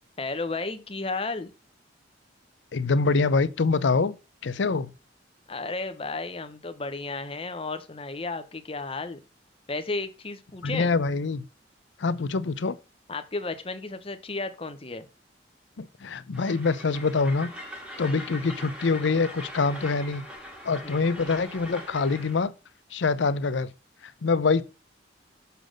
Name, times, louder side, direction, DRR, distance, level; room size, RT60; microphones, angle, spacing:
voice 1, 0.2-1.5 5.5-9.2 9.7-10.9 13.1-15.1 20.8-21.0, left 3 dB, 30° left, 0.8 m, -33 dB
voice 2, 2.7-4.2 4.4-4.9 10.6-11.4 12.0-12.8 15.8-17.5 18.0-20.2 20.6-22.5 22.9-23.7 24.2-24.6, left 4 dB, 75° left, 0.6 m, -25 dB
Train, 16.3-22.4, equal, 5° right, 1.8 m, -41 dB
6.8 x 4.0 x 6.3 m
head